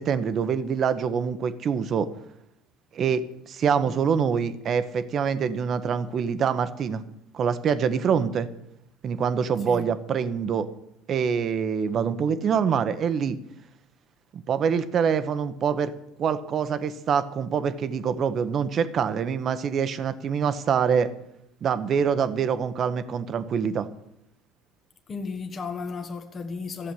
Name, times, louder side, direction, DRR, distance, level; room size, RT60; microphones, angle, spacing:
voice 1, 0.0-2.1 2.9-7.0 7.3-8.5 9.0-10.7 11.1-13.4 14.3-15.9 16.2-21.1 21.6-23.9, right 7 dB, 45° right, 1.1 m, -25 dB
voice 2, 25.1-26.9, left 4 dB, 35° left, 1.4 m, -34 dB
13.0 x 7.6 x 8.6 m
hypercardioid pair, 65°, 0 cm